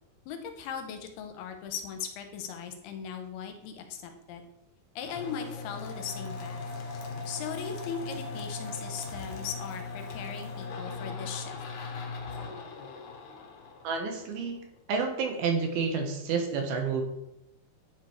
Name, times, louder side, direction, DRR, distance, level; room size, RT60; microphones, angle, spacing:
voice 1, 0.3-4.5 5.0-6.6 7.3-11.6, left 7 dB, 80° left, 6 dB, 2.6 m, -38 dB
sound 1, 5.0-14.6, left 3 dB, 65° left, 2.0 m, -39 dB
voice 2, 13.8-14.6 14.9-17.0, right 5 dB, 75° right, 3 dB, 2.8 m, -29 dB
9.9 x 4.8 x 4.6 m, 0.86 s
omnidirectional pair, 4.8 m